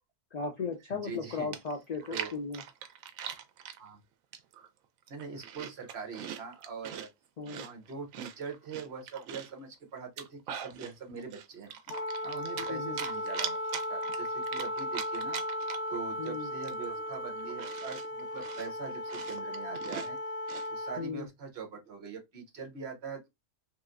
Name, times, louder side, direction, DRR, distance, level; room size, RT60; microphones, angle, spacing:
voice 1, 0.3-2.6 7.4-7.7 12.7-13.0 16.2-16.5 21.0-21.3, left 4 dB, 85° left, 0.3 m, -36 dB
voice 2, 0.9-1.6 2.0-2.3 3.8-4.0 5.1-7.1 7.6-11.8 12.2-13.6 13.9-15.4 15.9-20.2 20.7-23.3, right 5 dB, 55° right, 1.1 m, -42 dB
Chewing mastication, 1.1-1.2 1.5-3.8 4.3-4.7 5.0-7.1 7.5-9.6 10.0-10.9 11.3-12.7 13.0-16.0 16.3-16.4 16.6-20.7, right 9 dB, 90° right, 1.0 m, -41 dB
Wind instrument woodwind instrument, 11.9-21.1, equal, 65° left, 0.9 m, -36 dB
3.1 x 2.9 x 2.4 m
omnidirectional pair, 1.4 m